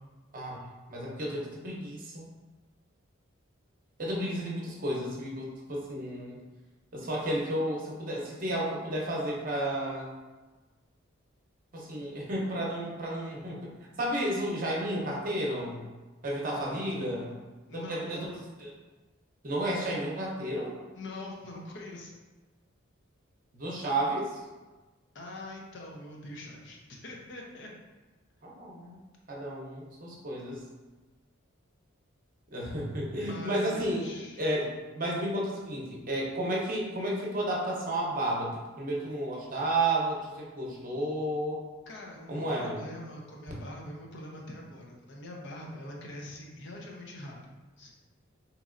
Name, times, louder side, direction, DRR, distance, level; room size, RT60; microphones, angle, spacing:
voice 1, 0.9-2.3 4.0-6.4 6.9-10.1 11.7-13.7 14.0-15.8 16.2-17.3 17.7-18.7 19.4-20.7 23.5-24.4 28.4-29.0 29.3-30.6 32.5-41.6 42.3-42.8, right 1 dB, 45° right, -3 dB, 0.7 m, -32 dB
voice 2, 16.5-17.0 17.7-18.4 20.9-22.1 25.1-27.7 33.2-34.4 41.9-47.5 47.8-47.9, left 1 dB, 60° left, -1 dB, 0.6 m, -43 dB
4.0 x 2.9 x 2.4 m, 1.2 s
head